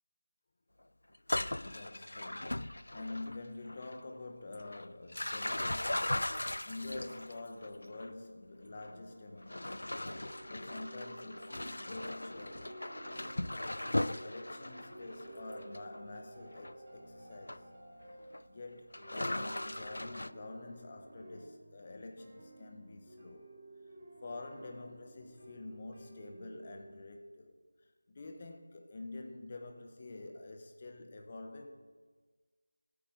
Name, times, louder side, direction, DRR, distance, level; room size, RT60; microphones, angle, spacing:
sound 1, 1.2-3.4 3.7-4.0 4.5-8.1 8.8-8.9 9.4-16.0 16.6-16.7 17.5-17.6 18.1-18.4 18.9-20.3, left 1 dB, 70° left, 0.4 m, -38 dB
voice 1, 1.6-9.9 10.2-12.9 13.2-13.3 13.8-17.7 18.5-23.5 24.2-27.5 28.1-31.9, left 2 dB, 30° left, 0.9 m, -47 dB
sound 2, 8.9-27.0, right 2 dB, 30° right, 2.1 m, -54 dB
13.0 x 8.7 x 4.7 m
figure-of-eight pair, 170°, 0 cm